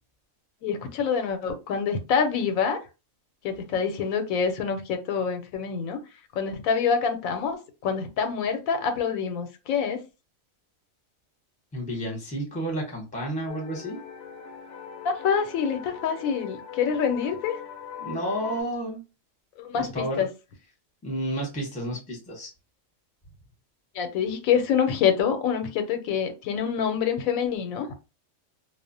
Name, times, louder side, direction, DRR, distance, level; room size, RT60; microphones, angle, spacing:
voice 1, 0.6-2.8 3.4-6.0 6.4-10.0 15.0-17.6 19.6-20.3 23.9-27.9, left 7 dB, 85° left, 1.0 m, -26 dB
voice 2, 11.7-14.0 18.0-19.0 19.8-20.2 21.0-22.5, right 1 dB, 5° left, 0.7 m, -31 dB
sound 1, 13.5-18.6, left 8 dB, 60° left, 0.7 m, -41 dB
2.4 x 2.0 x 2.5 m
omnidirectional pair, 1.4 m